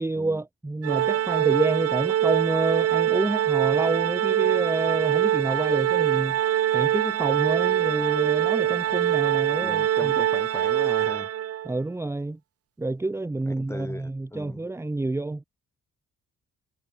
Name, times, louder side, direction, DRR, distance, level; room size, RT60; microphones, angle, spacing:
voice 1, 0.0-6.4 6.7-10.1 11.6-12.4 12.8-15.4, right 2 dB, 10° right, 0.7 m, -28 dB
Organ, 0.8-11.7, right 11 dB, 50° right, 0.7 m, -24 dB
voice 2, 9.5-11.3 13.5-14.6, left 1 dB, 10° left, 2.7 m, -38 dB
cardioid pair, 90°, 30 cm